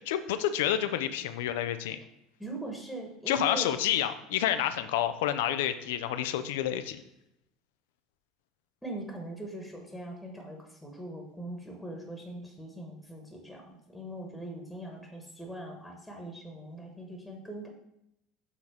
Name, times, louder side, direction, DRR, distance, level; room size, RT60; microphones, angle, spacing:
voice 1, 0.1-2.0 3.3-7.0, left 11 dB, 65° left, 11 dB, 0.4 m, -29 dB
voice 2, 2.4-3.7 8.8-17.7, right 1 dB, 5° left, 1 dB, 1.3 m, -41 dB
7.0 x 4.0 x 4.7 m, 0.82 s
figure-of-eight pair, 70°, 0 cm